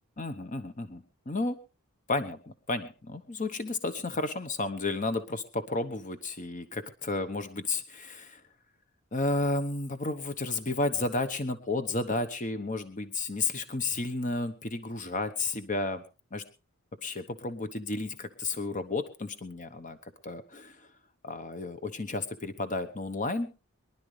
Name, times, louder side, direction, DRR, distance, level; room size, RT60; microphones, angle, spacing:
voice 1, 0.2-1.6 2.1-8.4 9.1-16.0 16.3-16.4 17.0-20.0 20.2-20.9 21.2-23.5, left 2 dB, 35° left, 10 dB, 1.0 m, -32 dB
23.5 x 11.5 x 3.3 m, 0.31 s
head